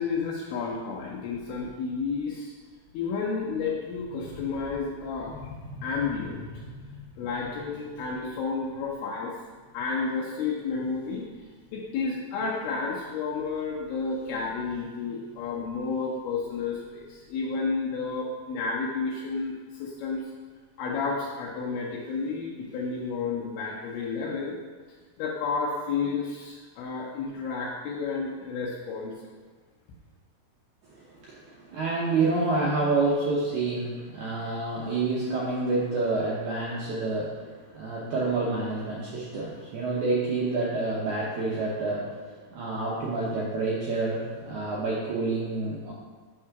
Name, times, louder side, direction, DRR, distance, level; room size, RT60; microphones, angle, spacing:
voice 1, 0.0-2.5 2.9-9.3 9.7-11.3 11.7-20.2 20.8-24.6 25.2-29.1, left 4 dB, 80° left, -4 dB, 2.7 m, -31 dB
voice 2, 30.9-45.9, right 3 dB, 75° right, -5 dB, 1.8 m, -28 dB
8.4 x 3.7 x 5.8 m, 1.5 s
omnidirectional pair, 4.5 m